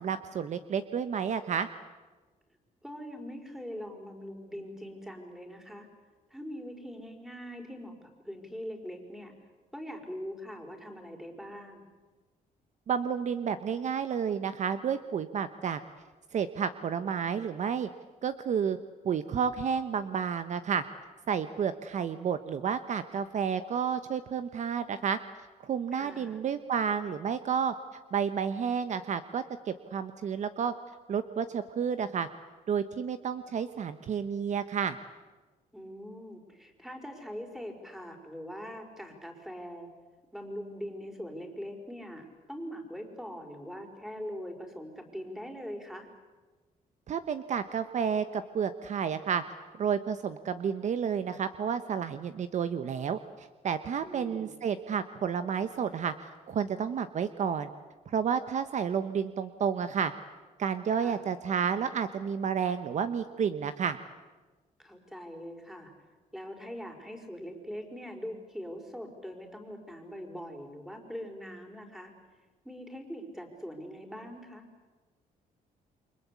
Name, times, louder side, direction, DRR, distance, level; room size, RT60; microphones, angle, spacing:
voice 1, 0.0-1.7 12.9-15.8 16.3-17.9 18.2-18.8 19.0-20.8 21.3-25.2 25.6-27.7 28.1-30.7 31.1-32.3 32.7-35.0 47.1-49.4 49.8-57.7 58.1-60.1 60.6-64.0, right 7 dB, 50° right, 11 dB, 1.1 m, -31 dB
voice 2, 2.8-5.9 6.3-9.3 9.7-11.8 25.9-26.4 35.7-39.9 40.3-46.1 54.0-54.5 60.9-61.2 64.8-65.9 66.3-72.1 72.6-74.7, equal, 5° right, 4 dB, 4.9 m, -42 dB
29.0 x 24.5 x 8.4 m, 1.3 s
cardioid pair, 125°, 15 cm